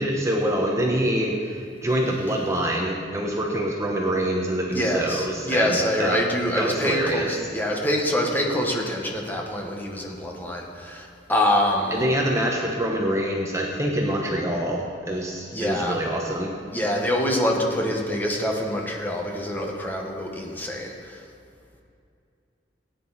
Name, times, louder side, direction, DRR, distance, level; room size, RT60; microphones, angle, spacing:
voice 1, 0.0-6.2 6.6-7.3 11.9-16.5, right 1 dB, 15° right, -1 dB, 1.0 m, -25 dB
voice 2, 4.7-12.0 15.5-16.0 16.7-21.2, equal, 10° left, 0 dB, 1.5 m, -25 dB
17.5 x 9.5 x 4.2 m, 2.4 s
head